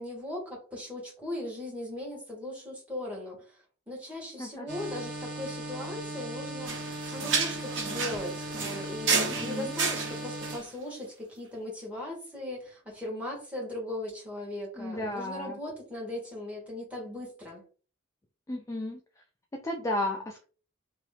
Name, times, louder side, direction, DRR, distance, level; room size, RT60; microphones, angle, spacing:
voice 1, 0.0-17.6, left 1 dB, 5° right, -4 dB, 1.4 m, -38 dB
sound 1, 4.7-10.6, right 1 dB, 60° right, 0.7 m, -38 dB
sound 2, 6.7-10.7, right 4 dB, 80° right, 0.9 m, -31 dB
voice 2, 9.4-9.7 14.8-15.6 18.5-19.0 19.5-20.4, left 1 dB, 15° left, 2 dB, 0.3 m, -33 dB
2.9 x 2.3 x 3.3 m, 0.38 s
head